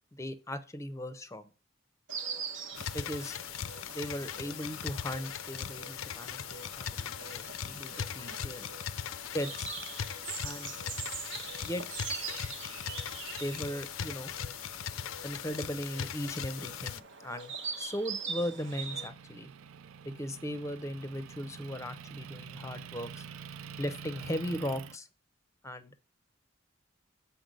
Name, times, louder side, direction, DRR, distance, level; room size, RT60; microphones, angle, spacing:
voice 1, 0.1-1.5 2.9-3.4 3.9-8.7 9.3-9.7 10.4-10.8 11.6-11.8 13.4-14.3 15.2-19.5 20.0-23.3 23.8-25.1 25.6-26.0, equal, 15° left, 12 dB, 0.6 m, -38 dB
Insect, 2.1-19.1, right 5 dB, 60° right, 0.9 m, -43 dB
sound 1, 2.7-17.0, left 8 dB, 80° left, 0.5 m, -39 dB
Motor vehicle (road) / Engine, 18.6-25.0, right 6 dB, 85° right, 0.4 m, -47 dB
7.7 x 4.4 x 5.2 m, 0.35 s
head